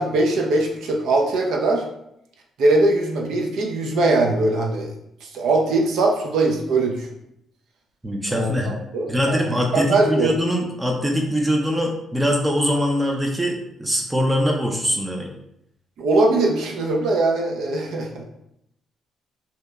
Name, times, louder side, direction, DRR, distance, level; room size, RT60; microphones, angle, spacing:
voice 1, 0.0-1.8 2.6-4.9 5.2-7.1 8.3-9.4 9.7-10.3 16.0-18.2, right 2 dB, 80° right, 0 dB, 0.4 m, -21 dB
voice 2, 8.0-8.7 9.1-15.3, equal, 15° right, 0 dB, 0.4 m, -22 dB
2.7 x 2.1 x 2.3 m, 0.79 s
cardioid pair, 90°, 0 cm